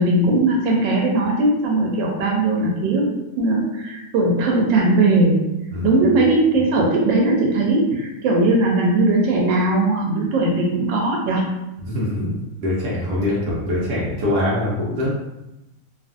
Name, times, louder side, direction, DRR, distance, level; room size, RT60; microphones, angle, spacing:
voice 1, 0.0-3.1 3.3-5.4 5.8-11.5, right 2 dB, 85° right, -1 dB, 1.3 m, -19 dB
voice 2, 5.7-6.1 11.9-15.1, left 1 dB, 70° right, -6 dB, 1.1 m, -23 dB
2.9 x 2.4 x 2.4 m, 0.93 s
omnidirectional pair, 1.9 m